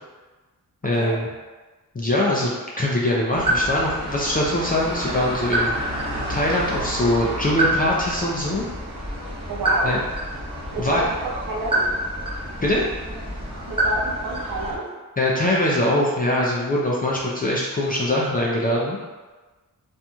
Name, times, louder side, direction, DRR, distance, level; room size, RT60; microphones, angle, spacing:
voice 1, 0.8-1.3 1.9-8.6 9.8-10.0 10.8-11.0 12.6-12.8 15.2-19.0, left 1 dB, 25° left, -4 dB, 0.4 m, -22 dB
sound 1, 3.3-14.8, right 1 dB, 15° right, 0.9 m, -27 dB
voice 2, 9.5-10.0 10.7-11.8 13.7-14.9, right 2 dB, 70° right, -3 dB, 0.7 m, -29 dB
2.9 x 2.6 x 2.3 m, 1.3 s
wide cardioid pair, 90°, 35 cm